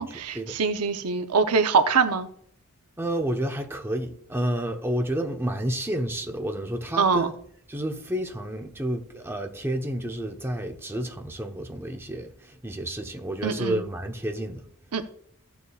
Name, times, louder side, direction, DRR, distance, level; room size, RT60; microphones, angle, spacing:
voice 1, 0.0-2.3 7.0-7.3 13.4-13.8 14.9-15.0, right 5 dB, 90° right, 0.8 m, -23 dB
voice 2, 3.0-7.4 7.7-14.6, right 1 dB, 10° right, 1.0 m, -30 dB
14.5 x 7.0 x 2.4 m
head